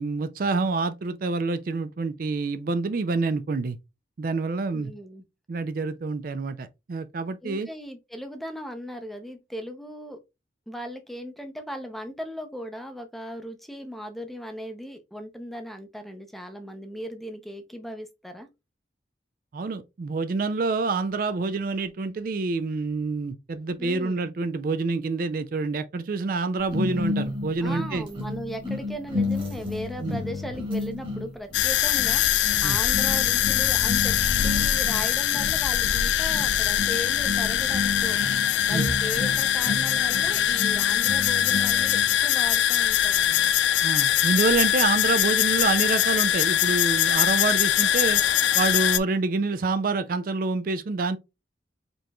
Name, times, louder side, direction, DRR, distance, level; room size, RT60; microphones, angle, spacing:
voice 1, 0.0-3.8 4.2-4.9 5.5-7.7 19.5-28.1 30.0-30.2 32.6-32.8 38.7-38.8 43.8-48.2 48.5-51.2, right 3 dB, 50° right, 0.4 m, -27 dB
voice 2, 4.7-5.2 7.4-10.2 10.7-18.5 23.8-24.2 27.6-34.2 34.4-38.2 38.7-43.5, equal, ahead, 0.5 m, -37 dB
sound 1, 26.7-42.2, left 3 dB, 30° right, 1.6 m, -32 dB
sound 2, 31.5-49.0, left 11 dB, 80° left, 0.3 m, -22 dB
5.2 x 2.9 x 2.3 m
head